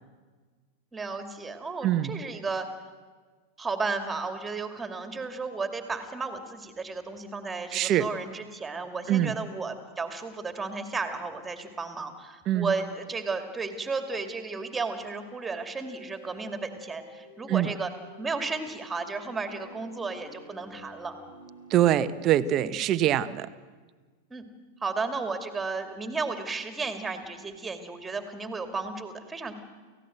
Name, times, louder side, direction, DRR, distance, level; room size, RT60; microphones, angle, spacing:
voice 1, 0.9-2.7 3.6-17.9 18.2-21.1 22.6-22.7 24.3-24.4 24.8-29.5, right 4 dB, 10° right, 7 dB, 2.6 m, -33 dB
voice 2, 1.8-2.2 7.7-8.1 9.1-9.3 12.5-12.7 17.5-17.7 21.7-23.5, right 12 dB, 35° right, 13 dB, 0.9 m, -24 dB
sound 1, 15.8-22.1, equal, 85° left, 5.1 m, -50 dB
29.5 x 16.0 x 7.9 m, 1.4 s
figure-of-eight pair, 90°, 0 cm